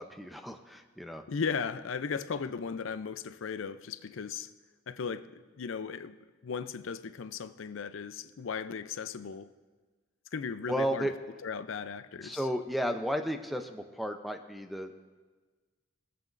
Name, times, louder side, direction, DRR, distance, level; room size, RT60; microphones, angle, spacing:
voice 1, 0.0-1.2 10.7-11.1 12.2-14.9, equal, ahead, 0.6 m, -33 dB
voice 2, 1.3-4.5 4.9-6.2 6.4-9.5 10.3-11.1 11.4-12.4, left 6 dB, 75° left, 0.5 m, -36 dB
22.5 x 7.7 x 2.6 m
head